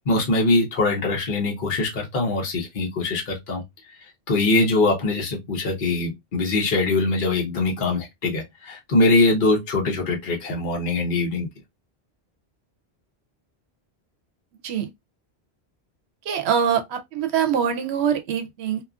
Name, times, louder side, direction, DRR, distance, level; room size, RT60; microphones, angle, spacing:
voice 1, 0.1-3.6 4.3-11.5, left 2 dB, 55° left, 1.0 m, -22 dB
voice 2, 16.3-18.8, right 8 dB, 80° right, 0.8 m, -24 dB
2.9 x 2.4 x 2.3 m
omnidirectional pair, 1.1 m